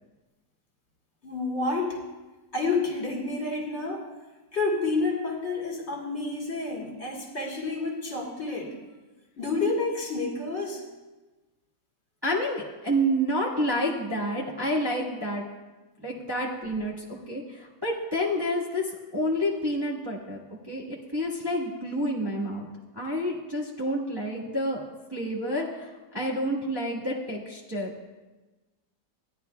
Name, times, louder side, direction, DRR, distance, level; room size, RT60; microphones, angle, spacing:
voice 1, 1.2-2.0 2.5-4.0 4.5-8.8 9.4-10.8, left 3 dB, 40° left, -2 dB, 1.9 m, -29 dB
voice 2, 12.2-15.4 16.0-18.8 19.1-20.4 20.7-22.7 22.9-24.8 25.1-27.9, equal, 15° right, -6 dB, 1.3 m, -29 dB
17.0 x 10.0 x 2.3 m, 1.2 s
omnidirectional pair, 1.8 m